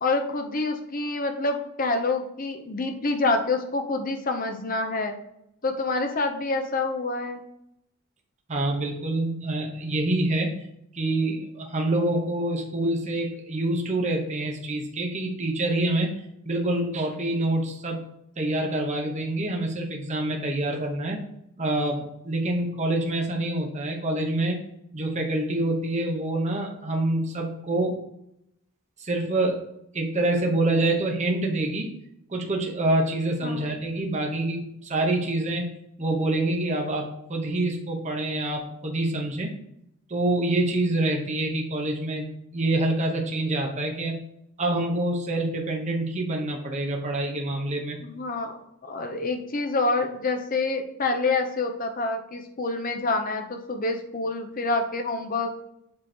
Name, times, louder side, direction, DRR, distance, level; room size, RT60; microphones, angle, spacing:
voice 1, 0.0-5.1 5.6-7.4 33.4-33.8 48.0-55.5, left 3 dB, 40° left, 6 dB, 0.8 m, -27 dB
voice 2, 8.5-10.5 10.9-16.1 16.4-18.0 18.4-21.2 21.6-24.6 24.9-28.0 29.0-29.6 29.9-31.9 32.3-35.7 36.0-39.5 40.1-42.3 42.5-44.2 44.6-48.0, right 1 dB, 30° right, 1 dB, 1.0 m, -26 dB
7.6 x 3.1 x 4.3 m, 0.78 s
head